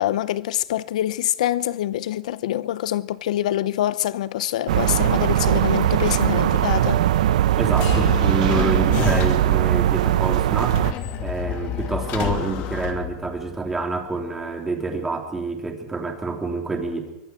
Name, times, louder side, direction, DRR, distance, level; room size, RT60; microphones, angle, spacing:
voice 1, 0.0-7.0, left 12 dB, 80° left, 0.8 m, -25 dB
sound 1, 4.0-4.3 4.9-5.2 5.8-6.7 7.8-8.5 9.1-9.5 11.3-11.4, left 8 dB, 60° left, 5.7 m, -44 dB
sound 2, 4.7-10.9, right 12 dB, 85° right, 0.9 m, -20 dB
voice 2, 7.6-10.9 11.2-17.1, right 3 dB, 10° right, 3.3 m, -27 dB
sound 3, 7.7-9.6 10.7-13.6, left 8 dB, 40° left, 2.6 m, -28 dB
24.5 x 24.0 x 4.6 m
supercardioid pair, 160°, 4 cm